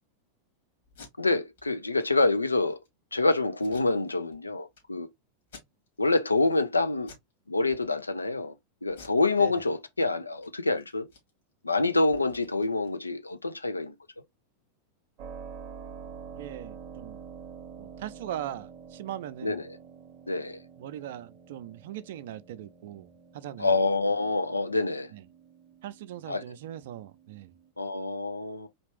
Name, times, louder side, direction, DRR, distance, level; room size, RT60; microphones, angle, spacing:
Packing tape duct tape, 0.8-1.1 1.5-1.7 2.0-2.1 2.5-2.9 3.6-4.4 4.7-4.8 5.4-6.1 6.5-6.7 7.0-7.3 7.6-8.3 8.9-10.0 10.3-10.5 10.8-13.4, left 3 dB, 60° left, 2.6 m, -53 dB
voice 1, 1.2-2.8 3.1-5.1 6.0-7.1 7.5-8.5 8.8-11.1 11.6-13.9 19.4-19.8 20.3-20.6 23.6-25.1 26.3-26.4 27.8-28.7, left 3 dB, 80° left, 0.6 m, -26 dB
Keyboard (musical), 15.2-27.7, right 6 dB, 40° right, 0.9 m, -48 dB
voice 2, 16.3-17.2 17.8-19.6 20.8-23.8 25.1-25.2 25.8-27.5, right 11 dB, 55° right, 0.5 m, -40 dB
4.3 x 3.2 x 3.1 m
figure-of-eight pair, 90°, 0 cm